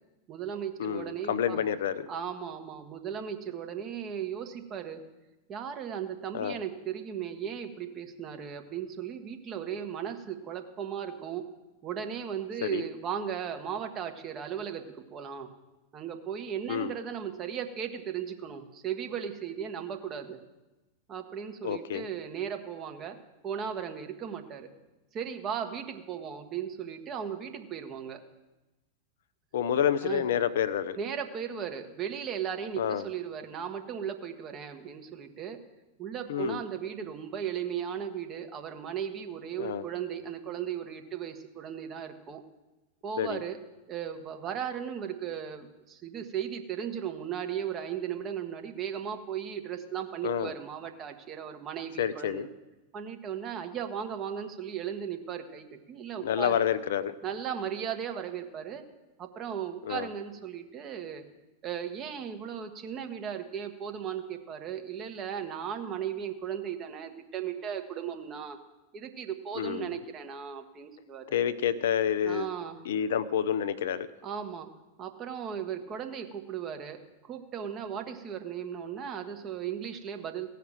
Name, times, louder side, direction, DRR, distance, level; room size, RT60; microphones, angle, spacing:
voice 1, 0.3-1.6 2.1-5.0 5.5-11.4 11.8-15.5 15.9-20.4 21.1-23.2 23.4-24.7 25.1-28.2 30.0-30.3 30.9-35.6 36.0-42.4 43.0-43.6 43.9-52.5 52.9-56.6 57.2-58.8 59.2-61.2 61.6-68.6 68.9-71.4 72.2-72.8 74.2-74.7 75.0-80.5, right 8 dB, 30° right, 6 dB, 1.3 m, -36 dB
voice 2, 0.8-2.1 6.3-6.6 12.6-12.8 16.7-16.9 21.6-22.0 29.5-31.0 32.8-33.0 36.3-36.6 39.6-39.8 43.2-43.4 50.2-50.5 52.0-52.5 56.2-57.1 59.9-60.1 69.6-69.9 71.3-72.4 72.9-74.1, left 9 dB, 60° left, 13 dB, 0.5 m, -28 dB
16.5 x 5.8 x 7.5 m, 1.1 s
figure-of-eight pair, 90°, 0 cm